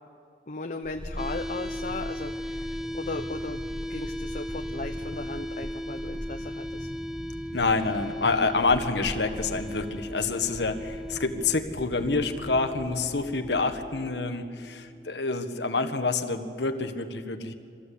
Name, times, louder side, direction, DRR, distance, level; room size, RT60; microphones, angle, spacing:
voice 1, 0.5-3.6 3.9-6.9, left 2 dB, 45° left, 3 dB, 0.9 m, -37 dB
sound 1, 0.8-13.2 13.5-13.6, equal, 20° left, 1.2 m, -41 dB
sound 2, 1.2-15.1, equal, 5° right, 0.5 m, -37 dB
sound 3, 2.6-13.9, equal, 25° right, 2.3 m, -50 dB
voice 2, 7.5-17.5, left 3 dB, 70° left, 6 dB, 1.4 m, -27 dB
25.0 x 15.0 x 8.5 m, 2.3 s
head